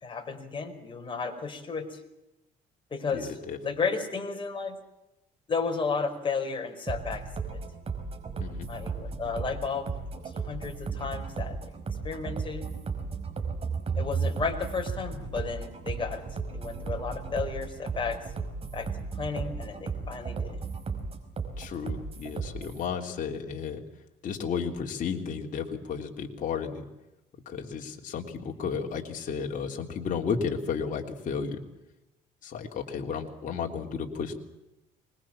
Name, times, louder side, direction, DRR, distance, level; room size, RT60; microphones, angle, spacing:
voice 1, 0.0-2.0 2.9-3.3 3.6-4.8 5.5-7.2 7.5-7.6 8.7-9.9 10.4-11.7 12.0-12.7 13.9-16.2 16.5-18.2 18.7-20.6, left 5 dB, 30° left, 4 dB, 5.0 m, -33 dB
voice 2, 3.1-3.6 8.4-8.7 21.6-23.8 24.2-26.8 27.4-31.6 32.4-34.4, left 6 dB, 50° left, 1 dB, 3.4 m, -33 dB
sound 1, 6.9-22.8, right 5 dB, 35° right, 5.1 m, -35 dB
25.0 x 21.5 x 7.4 m, 0.95 s
cardioid pair, 110°, 17 cm